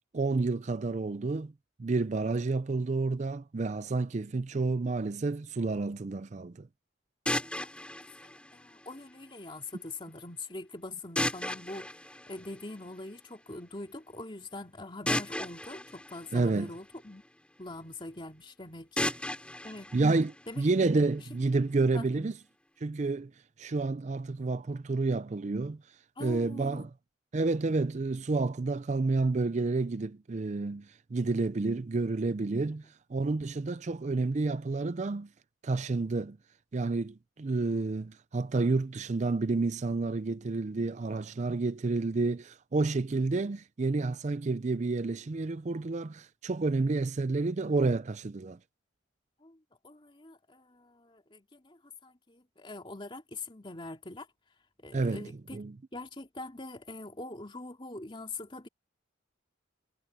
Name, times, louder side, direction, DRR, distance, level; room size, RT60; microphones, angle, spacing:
voice 1, 0.1-1.5 1.8-6.7 16.3-16.7 19.9-22.3 22.8-23.3 23.6-25.8 26.2-26.9 27.3-35.3 35.6-36.4 36.7-48.6 54.9-55.8, right 3 dB, 35° right, 0.4 m, -30 dB
sound 1, 7.3-9.3 11.2-13.1 15.1-17.3 19.0-21.0, left 1 dB, 5° left, 4.3 m, -36 dB
voice 2, 7.4-7.7 8.2-11.9 12.3-17.2 17.6-19.1 19.6-19.9 20.5-20.6 21.9-22.3 26.2-26.9 41.1-41.2 49.4-49.6 49.8-54.3 54.8-55.6 55.9-58.7, left 2 dB, 25° left, 2.8 m, -43 dB
head